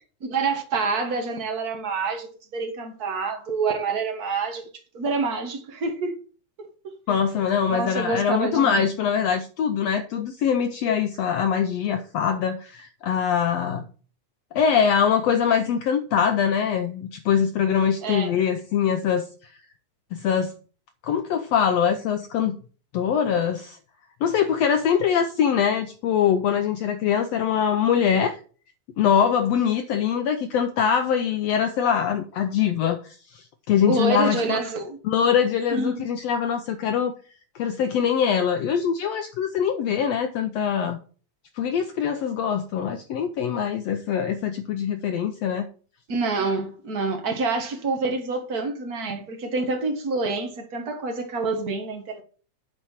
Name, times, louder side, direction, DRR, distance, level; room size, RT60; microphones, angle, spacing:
voice 1, 0.2-4.7 4.9-6.1 6.6-6.7 7.7-8.9 18.0-18.3 33.9-35.0 35.7-36.0 46.1-52.2, right 3 dB, 45° right, 1.2 m, -27 dB
voice 2, 7.1-13.8 14.5-19.3 20.1-20.5 21.0-22.5 22.9-23.8 24.2-28.4 29.0-34.6 35.0-37.1 37.6-41.0 41.6-45.7, left 8 dB, 75° left, 1.5 m, -23 dB
9.1 x 4.3 x 7.1 m
omnidirectional pair, 3.6 m